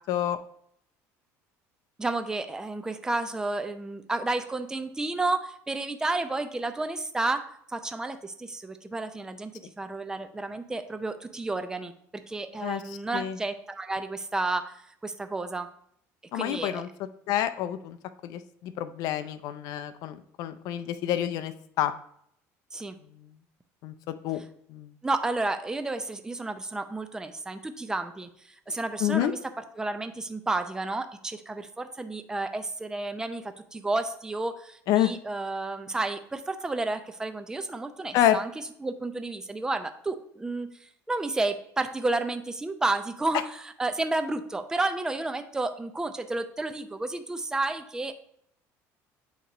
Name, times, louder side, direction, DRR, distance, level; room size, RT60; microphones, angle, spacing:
voice 1, 0.1-0.4 12.6-12.8 13.1-13.4 16.3-16.9 17.3-18.0 18.2-21.9 23.8-24.4 24.7-24.9 29.0-29.3 34.9-35.1 38.1-38.4, left 12 dB, 65° left, 11 dB, 0.5 m, -28 dB
voice 2, 2.0-11.9 12.3-15.7 16.3-16.9 22.7-22.9 25.0-28.3 28.7-38.5 38.8-48.1, right 2 dB, 10° right, 8 dB, 0.5 m, -31 dB
8.2 x 3.0 x 4.9 m, 0.68 s
cardioid pair, 125°, 7 cm